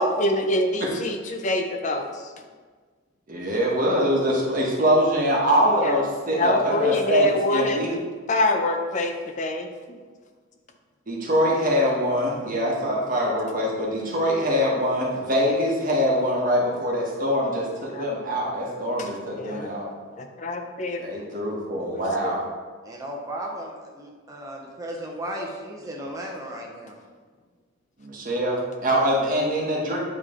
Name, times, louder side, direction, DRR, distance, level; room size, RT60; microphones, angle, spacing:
voice 1, 0.0-2.1 5.8-5.9 6.4-8.0 8.3-9.7 17.9-18.1 19.4-19.7 20.2-21.0, left 1 dB, 35° left, 4 dB, 0.5 m, -25 dB
voice 2, 3.3-7.9 11.1-19.8 21.0-22.4 28.0-30.0, equal, 40° right, -3 dB, 1.2 m, -23 dB
voice 3, 22.8-26.9, right 1 dB, 15° right, -1 dB, 0.8 m, -35 dB
8.7 x 3.2 x 3.7 m, 1.5 s
head